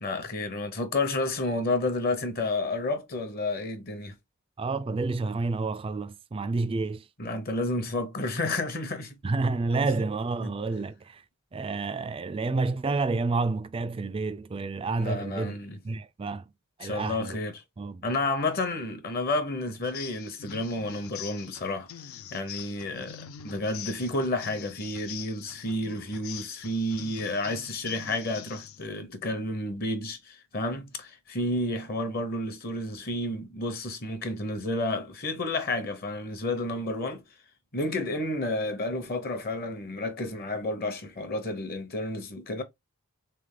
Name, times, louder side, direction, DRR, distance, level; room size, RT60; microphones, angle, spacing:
voice 1, 0.0-4.1 7.2-9.2 10.4-10.5 15.0-15.8 16.8-17.6 18.0-21.9 22.3-37.2 37.7-42.6, left 2 dB, 40° left, 0.8 m, -31 dB
voice 2, 4.6-7.1 9.2-11.2 11.5-15.5 15.8-16.5 16.8-17.4 17.8-18.0, right 3 dB, 25° right, 0.3 m, -29 dB
sound 1, 19.8-28.9, left 9 dB, 65° left, 0.4 m, -44 dB
3.5 x 3.4 x 3.8 m
head